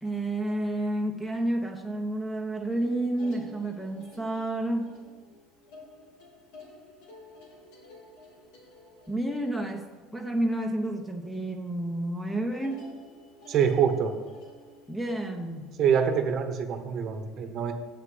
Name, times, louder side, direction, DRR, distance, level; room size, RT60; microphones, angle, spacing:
voice 1, 0.0-4.9 9.1-12.8 14.9-15.7, right 1 dB, 5° left, 4 dB, 0.7 m, -30 dB
sound 1, 2.7-11.5 11.8-12.2 12.6-16.2, left 1 dB, 80° left, 2.6 m, -52 dB
voice 2, 13.5-14.1 15.8-17.7, right 7 dB, 40° right, 7 dB, 0.9 m, -25 dB
8.7 x 6.3 x 7.7 m, 1.4 s
cardioid pair, 165°, 0 cm